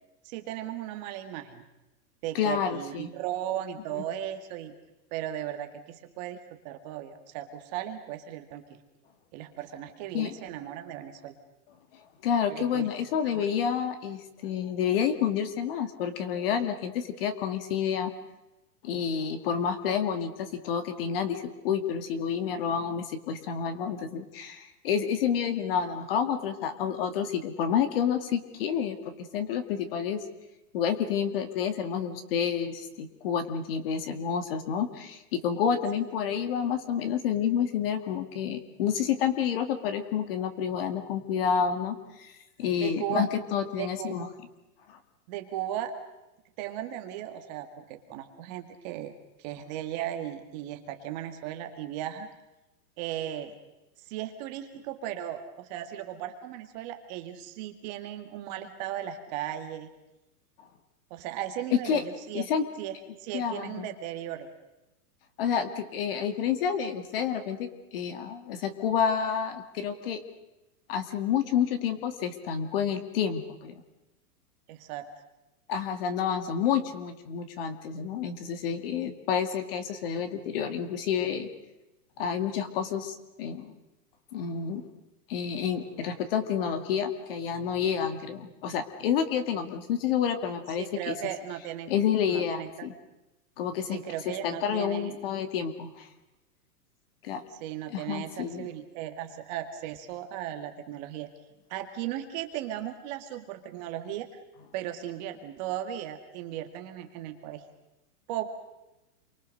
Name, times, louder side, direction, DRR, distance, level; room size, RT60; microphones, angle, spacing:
voice 1, 0.2-1.6 2.2-4.8 5.1-8.8 9.3-11.4 12.5-12.9 13.3-13.5 42.8-43.3 43.8-44.1 45.3-45.9 46.6-52.3 53.0-53.6 54.0-59.9 61.1-62.5 62.8-64.5 74.7-75.1 90.8-91.9 92.3-92.9 93.9-95.2 97.6-101.3 101.7-104.3 104.7-107.6 108.3-108.5, right 11 dB, 30° right, 6 dB, 1.8 m, -36 dB
voice 2, 2.3-3.1 3.9-4.0 10.1-10.3 12.2-18.1 18.8-29.0 29.3-30.2 30.7-42.3 42.6-44.3 44.9-45.0 61.9-62.0 62.3-62.7 63.3-63.9 65.4-70.2 70.9-73.7 75.7-81.5 82.2-83.7 84.3-84.8 85.3-91.1 91.9-92.9 93.6-94.0 94.4-96.1 97.2-97.4 97.9-98.7, left 8 dB, 40° left, 9 dB, 2.3 m, -29 dB
28.5 x 24.0 x 6.5 m, 1.0 s
hypercardioid pair, 170°, 45 cm